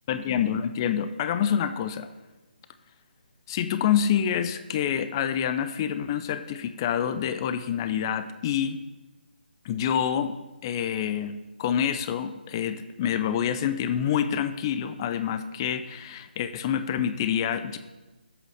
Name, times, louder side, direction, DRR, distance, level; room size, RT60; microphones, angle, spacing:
voice 1, 0.1-2.1 3.5-8.8 9.6-10.3 10.6-17.8, left 9 dB, 25° left, 10 dB, 0.4 m, -27 dB
7.8 x 6.3 x 6.4 m, 1.1 s
figure-of-eight pair, 150°, 5 cm